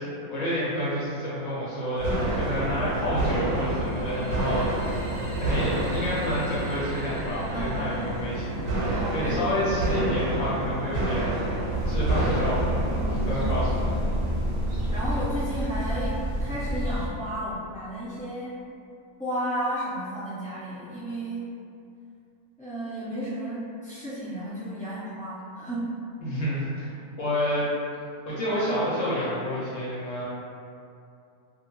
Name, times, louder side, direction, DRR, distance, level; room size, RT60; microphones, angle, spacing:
voice 1, 0.3-5.0 5.4-14.0 26.2-26.9 27.2-27.7 28.3-30.3, equal, 70° left, -8 dB, 0.8 m, -29 dB
sound 1, 2.0-15.4, right 1 dB, 90° right, 1.1 m, -29 dB
voice 2, 2.6-3.0 7.5-8.1 8.9-10.0 12.9-13.3 13.8-14.2 14.9-18.6 19.2-21.5 22.6-26.0, equal, 5° left, -14 dB, 0.9 m, -33 dB
sound 2, 3.4-9.3, equal, 30° right, 0.6 m, -43 dB
sound 3, 11.7-17.1, equal, 75° right, 0.4 m, -28 dB
2.2 x 2.2 x 3.0 m, 2.5 s
omnidirectional pair, 1.6 m